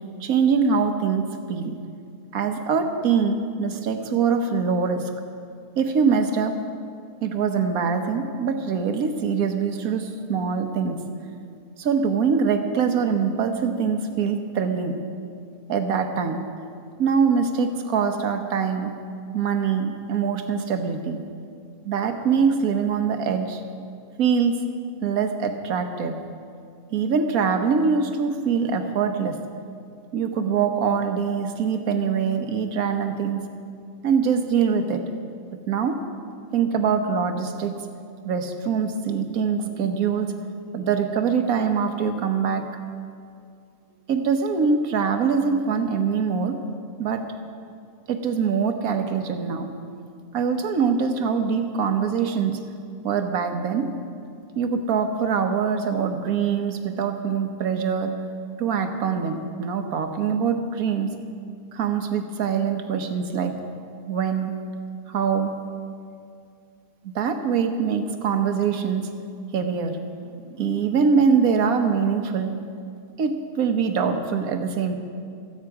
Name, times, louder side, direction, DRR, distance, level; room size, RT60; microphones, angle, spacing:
voice 1, 0.2-1.8 2.3-5.1 5.8-6.6 7.2-11.0 11.8-15.0 15.7-16.4 17.0-18.9 19.3-21.2 21.8-23.6 24.2-24.6 25.0-26.2 26.9-29.4 30.1-33.5 34.0-35.1 35.7-36.0 36.5-37.8 38.2-40.3 40.7-42.7 44.1-46.6 47.0-47.3 48.1-49.7 50.3-52.6 53.0-53.9 54.5-58.1 58.6-61.1 61.7-63.6 64.1-64.6 65.1-65.6 67.1-69.1 69.5-72.5 73.2-75.0, right 6 dB, 60° right, 6 dB, 1.5 m, -23 dB
26.5 x 8.9 x 4.8 m, 2.3 s
omnidirectional pair, 1.8 m